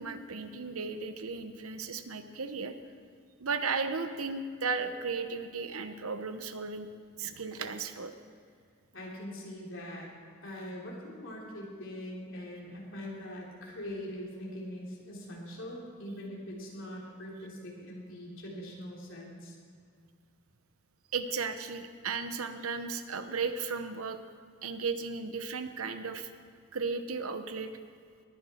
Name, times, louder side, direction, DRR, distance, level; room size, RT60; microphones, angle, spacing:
voice 1, 0.0-2.7 3.4-6.9 7.2-8.1 21.1-24.2 24.6-26.3 26.7-27.7, right 4 dB, 85° right, 9 dB, 0.9 m, -35 dB
voice 2, 8.9-10.1 10.4-19.6, equal, 60° left, -3 dB, 3.3 m, -42 dB
19.5 x 10.0 x 4.4 m, 2.2 s
head